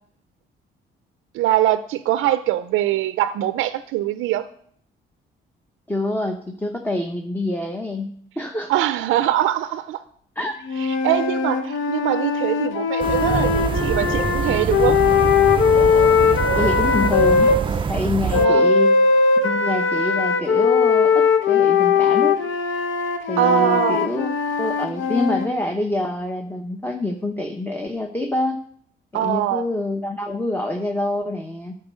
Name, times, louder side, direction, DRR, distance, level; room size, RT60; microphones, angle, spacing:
voice 1, 1.3-4.5 8.7-10.0 11.0-15.0 18.3-18.7 23.4-24.0 29.1-29.6, right 13 dB, 90° right, 12 dB, 0.4 m, -22 dB
voice 2, 5.9-8.7 10.4-10.5 16.5-17.5 17.9-18.9 19.4-22.4 23.3-24.3 24.6-28.6 29.1-31.8, left 1 dB, 10° left, 4 dB, 0.8 m, -26 dB
sound 1, 10.7-17.6 18.3-25.5, left 5 dB, 75° left, 0.9 m, -19 dB
sound 2, 13.0-18.5, right 6 dB, 25° right, 0.3 m, -25 dB
9.5 x 4.6 x 6.2 m, 0.62 s
cardioid pair, 90°, 20 cm